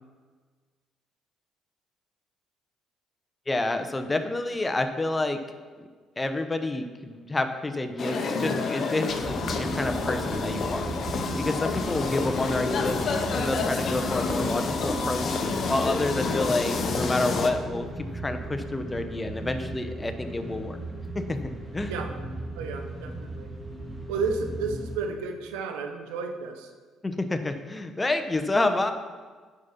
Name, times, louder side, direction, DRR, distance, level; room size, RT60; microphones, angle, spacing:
voice 1, 3.5-5.4 5.8-5.9 6.2-10.9 11.4-13.0 13.3-15.4 15.7-20.8 21.3-21.4 21.7-21.9 27.0-28.9, left 2 dB, 20° left, 7 dB, 0.9 m, -29 dB
sound 1, 8.0-17.5, left 4 dB, 50° left, 1.0 m, -29 dB
sound 2, 9.1-25.0, right 1 dB, 10° right, 2.0 m, -36 dB
voice 2, 22.6-23.5 24.1-26.7, right 4 dB, 85° right, 4 dB, 0.9 m, -32 dB
9.6 x 5.3 x 5.8 m, 1.5 s
hypercardioid pair, 60°, 0 cm